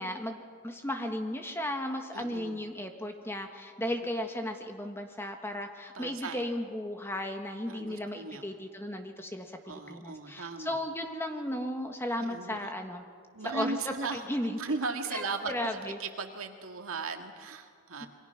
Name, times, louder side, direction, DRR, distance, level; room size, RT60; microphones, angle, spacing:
voice 1, 0.0-13.0 13.4-14.6 15.1-16.0 18.0-18.1, left 1 dB, 10° left, 4 dB, 1.5 m, -35 dB
voice 2, 2.1-2.6 5.9-6.5 7.7-8.5 9.7-10.8 12.2-12.7 13.3-14.2 14.6-18.1, right 3 dB, 80° right, 4 dB, 2.0 m, -37 dB
27.5 x 22.5 x 5.9 m, 2.1 s
head